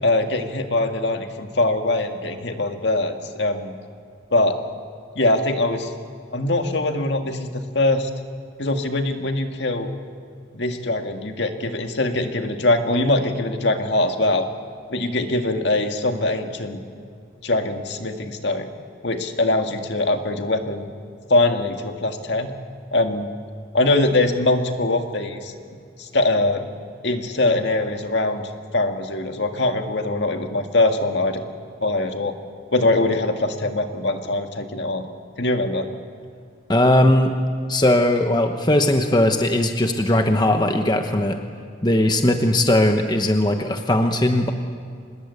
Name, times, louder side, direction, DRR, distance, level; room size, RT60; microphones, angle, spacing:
voice 1, 0.0-3.7 4.3-4.6 5.2-5.9 6.3-8.1 8.6-9.9 10.5-14.5 14.9-16.8 17.4-18.7 19.0-20.9 21.3-22.5 22.9-23.3 23.7-25.5 26.0-26.6 27.0-28.4 28.7-31.4 31.8-32.3 32.7-35.0 35.4-35.9, left 2 dB, 65° left, 5 dB, 2.0 m, -22 dB
voice 2, 36.7-37.3 37.7-41.4 41.8-44.5, left 1 dB, 20° left, 5 dB, 1.0 m, -18 dB
25.5 x 21.0 x 8.2 m, 2.3 s
head